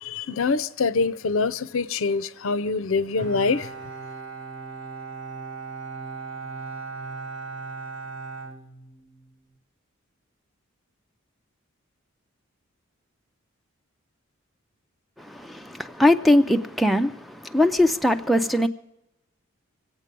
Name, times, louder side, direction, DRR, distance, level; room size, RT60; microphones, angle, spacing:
voice 1, 0.0-3.7, left 4 dB, 70° left, 0.6 m, -25 dB
Bowed string instrument, 3.2-9.3, right 4 dB, 60° right, 1.4 m, -37 dB
voice 2, 15.2-18.7, left 1 dB, ahead, 0.4 m, -21 dB
24.5 x 8.3 x 5.3 m
head